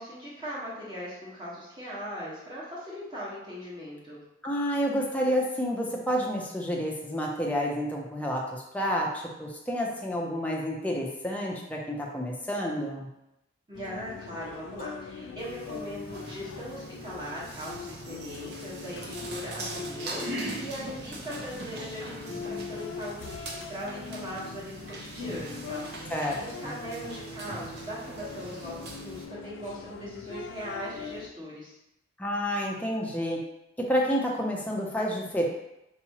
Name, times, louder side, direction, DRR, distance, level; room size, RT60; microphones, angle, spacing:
voice 1, 0.0-4.2 13.7-31.7, equal, 25° right, -8 dB, 1.2 m, -40 dB
voice 2, 4.4-13.1 26.1-26.7 32.2-33.4 33.8-35.4, equal, 10° left, -2 dB, 0.5 m, -29 dB
sound 1, 13.7-31.3, left 5 dB, 85° left, 0.3 m, -42 dB
sound 2, 15.4-29.3, right 2 dB, 55° right, 0.6 m, -41 dB
4.6 x 2.9 x 2.9 m, 0.88 s
head